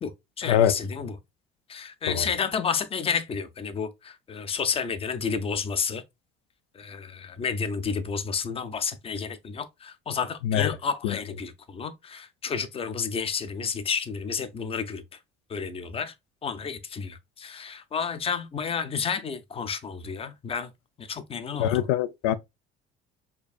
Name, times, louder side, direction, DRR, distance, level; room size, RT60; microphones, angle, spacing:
voice 1, 0.4-1.2 1.7-6.0 6.7-15.2 15.5-16.1 16.4-20.7 21.0-21.9, left 6 dB, 30° left, 0.6 m, -31 dB
voice 2, 10.4-10.8 11.0-11.1 21.6-22.4, left 10 dB, 85° left, 0.4 m, -23 dB
4.5 x 2.6 x 2.3 m
supercardioid pair, 100°, 20 cm